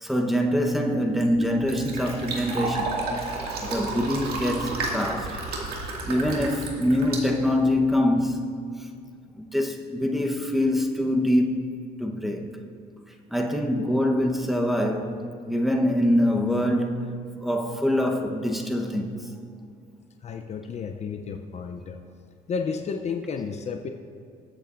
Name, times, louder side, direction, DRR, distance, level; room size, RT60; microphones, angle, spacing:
voice 1, 0.0-3.0 3.6-5.4 6.1-8.5 9.4-11.7 12.0-12.5 13.3-19.1, left 1 dB, ahead, 1.0 m, -24 dB
Fill (with liquid), 0.9-8.0, right 3 dB, 65° right, 2.2 m, -32 dB
voice 2, 20.2-22.0 22.5-23.9, left 5 dB, 40° left, 0.6 m, -32 dB
21.0 x 8.1 x 2.5 m
cardioid pair, 110°, 17 cm